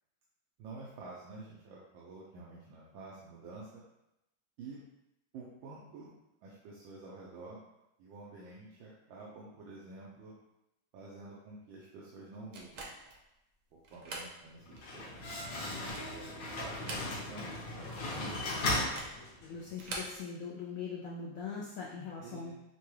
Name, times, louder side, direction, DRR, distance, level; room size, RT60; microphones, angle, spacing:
voice 1, 0.6-3.8 4.6-4.8 5.3-6.1 6.4-7.6 8.0-10.3 10.9-12.9 13.7-15.3 16.1-18.5 22.2-22.5, right 3 dB, 90° right, -5 dB, 1.4 m, -49 dB
sound 1, 12.5-13.2 13.8-14.3 14.8-14.9 15.5-16.2 16.7-17.5 17.7-17.8 18.8-19.2 19.7-20.2, right 2 dB, 60° right, 0.9 m, -44 dB
Slam, 14.6-19.7, left 2 dB, 60° left, 1.5 m, -37 dB
voice 2, 19.2-22.5, left 5 dB, 90° left, -3 dB, 0.7 m, -41 dB
5.9 x 2.3 x 3.1 m, 0.89 s
omnidirectional pair, 2.1 m